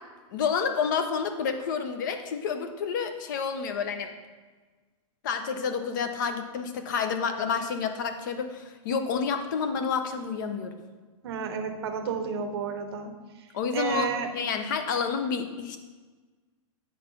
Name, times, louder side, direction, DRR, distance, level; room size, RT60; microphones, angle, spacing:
voice 1, 0.3-4.1 5.2-10.8 13.5-14.1 14.3-15.8, left 6 dB, 35° left, 7 dB, 0.6 m, -29 dB
voice 2, 11.2-13.1 13.4-13.5 13.7-14.3, right 6 dB, 45° right, 5 dB, 0.8 m, -31 dB
8.8 x 3.9 x 5.2 m, 1.3 s
supercardioid pair, 175°, 18 cm